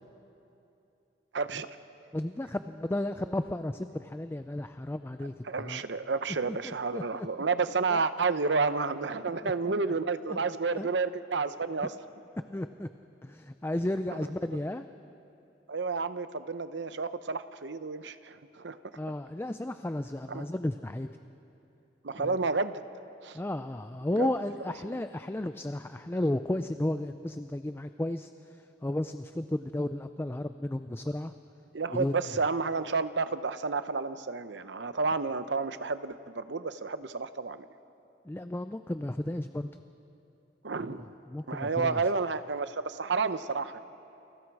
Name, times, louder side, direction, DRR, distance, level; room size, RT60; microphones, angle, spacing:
voice 1, 1.3-1.7 5.4-11.9 14.1-14.2 15.7-18.8 20.3-20.5 22.0-22.8 23.2-23.4 24.1-24.3 24.9-25.0 31.7-37.7 40.6-41.1 41.5-43.8, right 4 dB, 70° right, 12 dB, 0.8 m, -31 dB
voice 2, 2.1-5.8 6.5-7.3 7.9-8.0 9.4-9.5 10.3-10.4 10.8-10.9 12.5-12.9 13.2-14.9 19.0-21.2 22.2-22.4 23.3-28.3 28.8-31.3 31.9-32.2 38.3-39.7 40.8-42.0, left 1 dB, 15° left, 9 dB, 0.4 m, -33 dB
29.5 x 23.0 x 4.8 m, 2.8 s
head